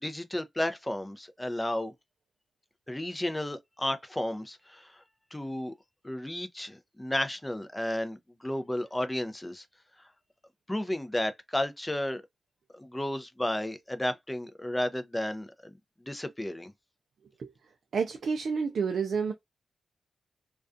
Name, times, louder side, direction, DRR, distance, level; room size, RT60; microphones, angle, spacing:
voice 1, 0.0-1.9 2.9-5.0 5.3-5.7 6.0-9.6 10.7-12.2 12.7-15.7 16.0-16.7, left 1 dB, 15° left, 0.5 m, -33 dB
voice 2, 17.9-19.3, right 5 dB, 70° right, 0.4 m, -29 dB
2.4 x 2.2 x 2.5 m
cardioid pair, 60°, 0 cm